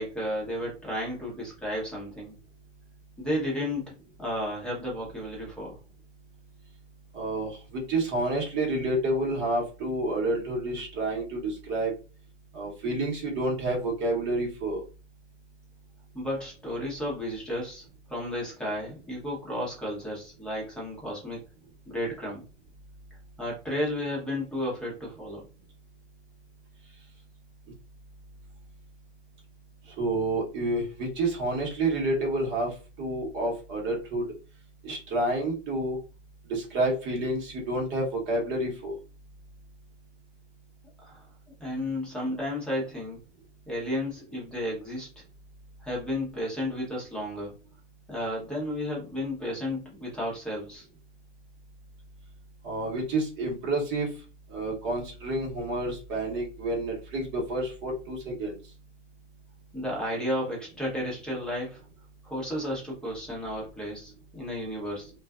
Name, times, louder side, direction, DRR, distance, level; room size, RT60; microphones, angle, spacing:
voice 1, 0.0-2.3 3.2-3.9 4.2-5.8 16.1-17.8 18.1-21.4 21.9-22.4 23.4-25.4 41.0-41.3 41.6-43.2 43.7-45.1 45.8-47.5 48.1-50.9 59.7-61.8 62.2-65.1, left 1 dB, ahead, -4 dB, 1.0 m, -33 dB
voice 2, 7.1-11.9 12.5-14.8 30.0-32.7 33.0-34.2 34.8-36.0 36.5-38.9 52.6-54.1 54.5-58.6, right 2 dB, 30° right, -1 dB, 1.1 m, -29 dB
2.4 x 2.3 x 2.4 m, 0.32 s
hypercardioid pair, 125°, 37 cm